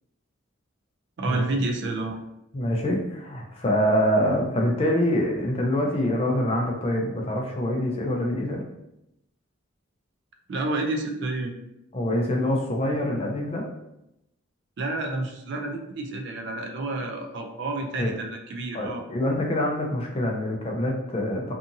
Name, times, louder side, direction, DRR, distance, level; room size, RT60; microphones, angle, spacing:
voice 1, 1.2-2.2 10.5-11.5 14.8-19.0, right 2 dB, 55° right, 4 dB, 0.3 m, -29 dB
voice 2, 2.5-8.6 11.9-13.6 18.0-18.1 18.7-21.5, left 1 dB, 30° left, 0 dB, 0.4 m, -25 dB
2.7 x 2.5 x 2.6 m, 0.85 s
head